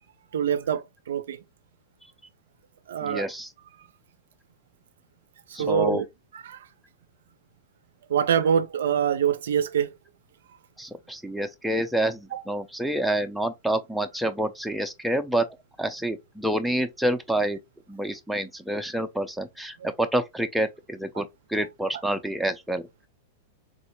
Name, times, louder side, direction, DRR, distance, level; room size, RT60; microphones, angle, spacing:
voice 1, 0.3-1.4 2.9-3.3 5.6-6.0 6.5-6.6 8.1-9.9 12.3-12.4, right 8 dB, 75° right, 0.4 m, -24 dB
voice 2, 3.0-3.5 5.5-6.0 10.8-15.4 15.8-17.6 17.9-23.1, right 1 dB, ahead, 0.4 m, -28 dB
3.6 x 2.0 x 2.9 m
hypercardioid pair, 110°, 0 cm